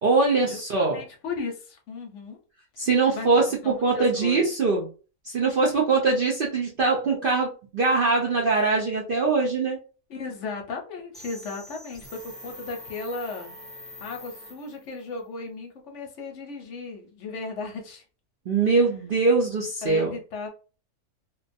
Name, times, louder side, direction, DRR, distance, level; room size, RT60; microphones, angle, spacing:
voice 1, 0.0-1.0 2.8-4.9 5.2-9.8 18.5-20.1, right 3 dB, 65° right, -2 dB, 0.5 m, -22 dB
voice 2, 0.9-2.4 2.8-2.9 3.1-4.4 10.1-13.5 14.0-18.0 19.8-20.5, left 4 dB, 65° left, 2 dB, 0.8 m, -36 dB
sound 1, 11.1-15.0, left 1 dB, ahead, 0.5 m, -44 dB
2.5 x 2.2 x 2.5 m, 0.35 s
omnidirectional pair, 1.6 m